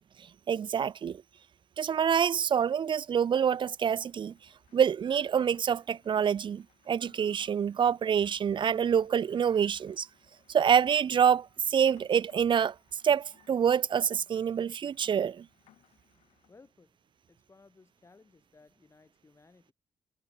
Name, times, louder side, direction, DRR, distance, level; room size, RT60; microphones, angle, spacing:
voice 1, 0.5-1.2 1.8-4.3 4.7-10.1 10.5-12.8 13.0-15.5, right 8 dB, 50° right, 0.6 m, -26 dB
Rain, 3.2-16.5, left 12 dB, 90° left, 8.0 m, -64 dB
voice 2, 16.5-17.0 17.3-19.7, left 3 dB, 25° left, 4.3 m, -59 dB
cardioid pair, 95°, 11 cm